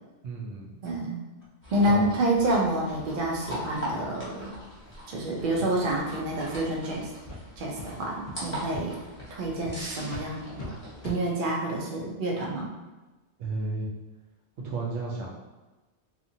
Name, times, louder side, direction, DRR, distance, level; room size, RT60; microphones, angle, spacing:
voice 1, 0.2-0.7 1.8-2.1 5.6-5.7 13.4-13.9 14.6-15.3, right 3 dB, 85° right, -4 dB, 1.0 m, -33 dB
sound 1, 0.8-1.0 1.4-1.5 1.9-2.0 2.4-2.5 2.9-3.0 3.4-3.5 3.8-4.0 4.4-4.5 4.9-5.0 5.3-5.7 6.3-6.4 6.8-6.9 7.3-7.4 7.8-7.9 8.3-8.4 8.7-8.8 9.2-9.3 9.6-9.7 10.1-10.2 10.6-10.7 11.0-11.2, left 2 dB, 55° left, 0.8 m, -42 dB
voice 2, 0.8-1.2 1.7-4.5 5.1-7.1 7.6-9.0 9.3-10.6 11.0-12.7, right 1 dB, 55° right, -2 dB, 0.7 m, -28 dB
sound 2, 1.6-11.1, equal, 10° left, 0.8 m, -41 dB
sound 3, 9.2-11.4, equal, 20° right, 0.4 m, -46 dB
2.8 x 2.5 x 2.6 m, 1.1 s
omnidirectional pair, 1.2 m